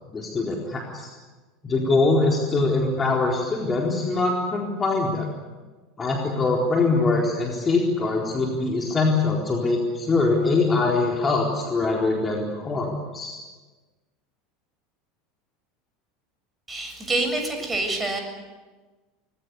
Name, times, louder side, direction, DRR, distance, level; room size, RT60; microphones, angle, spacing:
voice 1, 0.1-1.1 1.6-5.3 6.0-13.4, left 3 dB, 25° left, -1 dB, 4.1 m, -23 dB
voice 2, 16.7-18.2, right 2 dB, 15° right, 4 dB, 7.3 m, -26 dB
26.0 x 21.0 x 8.3 m, 1.3 s
figure-of-eight pair, 75°, 0 cm